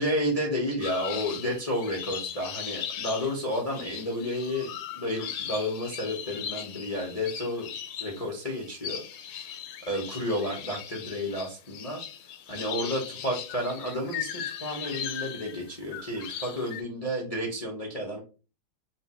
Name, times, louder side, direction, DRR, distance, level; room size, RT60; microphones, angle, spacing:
voice 1, 0.0-4.7 5.0-7.7 8.0-9.0 9.9-12.0 12.5-18.2, left 1 dB, 60° left, -3 dB, 0.3 m, -31 dB
sound 1, 0.8-16.8, left 9 dB, 80° left, 1.4 m, -38 dB
3.2 x 2.9 x 4.1 m, 0.33 s
omnidirectional pair, 2.3 m